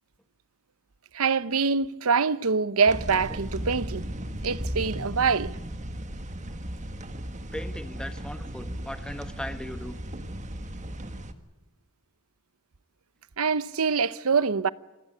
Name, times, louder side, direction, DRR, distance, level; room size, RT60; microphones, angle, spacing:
voice 1, 1.1-4.0 4.4-5.6 13.4-14.7, right 5 dB, 80° right, 0.8 m, -24 dB
sound 1, 2.9-11.3, right 1 dB, 35° right, 1.6 m, -36 dB
voice 2, 7.5-10.0, left 1 dB, 5° left, 1.5 m, -38 dB
27.0 x 15.0 x 9.7 m
head